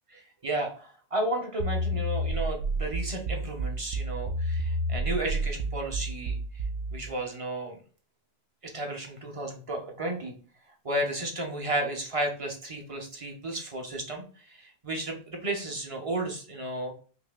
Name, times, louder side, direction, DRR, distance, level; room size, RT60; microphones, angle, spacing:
voice 1, 0.1-6.4 6.9-7.8 8.6-10.3 10.8-16.9, right 1 dB, 35° right, 2 dB, 0.9 m, -33 dB
sound 1, 1.6-7.1, right 1 dB, 75° right, 0.8 m, -30 dB
5.1 x 2.6 x 2.4 m, 0.41 s
omnidirectional pair, 1.1 m